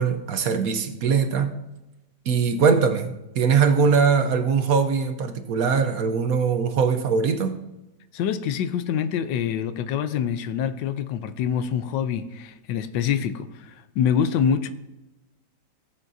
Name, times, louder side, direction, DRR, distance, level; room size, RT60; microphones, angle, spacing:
voice 1, 0.0-1.5 2.3-7.6, right 5 dB, 60° right, 8 dB, 1.1 m, -21 dB
voice 2, 8.1-14.7, left 8 dB, 85° left, 11 dB, 1.3 m, -25 dB
17.5 x 7.4 x 2.7 m, 0.98 s
omnidirectional pair, 1.9 m